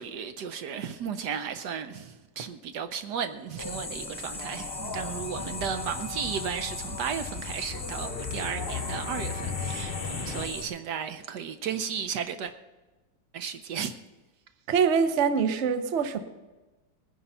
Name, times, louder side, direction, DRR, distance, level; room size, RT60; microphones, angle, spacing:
voice 1, 0.0-12.5 13.3-13.9, right 7 dB, 70° right, 1.2 m, -34 dB
sound 1, 3.6-10.6, left 3 dB, 15° left, 1.3 m, -37 dB
sound 2, 4.7-10.5, left 5 dB, 40° left, 0.9 m, -38 dB
voice 2, 14.7-16.2, right 6 dB, 50° right, 1.0 m, -24 dB
19.5 x 10.0 x 5.5 m
omnidirectional pair, 2.0 m